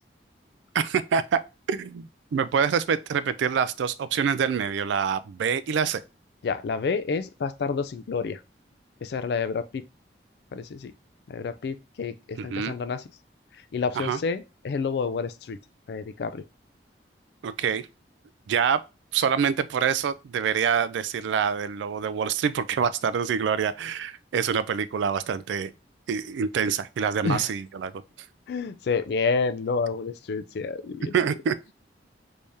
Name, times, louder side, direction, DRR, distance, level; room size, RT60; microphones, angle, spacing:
voice 1, 0.7-1.4 1.7-6.0 12.4-12.7 14.0-14.2 17.4-17.9 18.5-18.8 19.1-25.7 26.1-27.9 31.1-31.7, right 7 dB, 80° right, 0.3 m, -26 dB
voice 2, 6.4-8.4 9.0-9.8 10.5-10.9 11.3-13.0 13.7-15.6 15.9-16.4 27.2-27.5 28.5-31.1, left 5 dB, 65° left, 0.3 m, -29 dB
3.5 x 3.2 x 2.7 m
head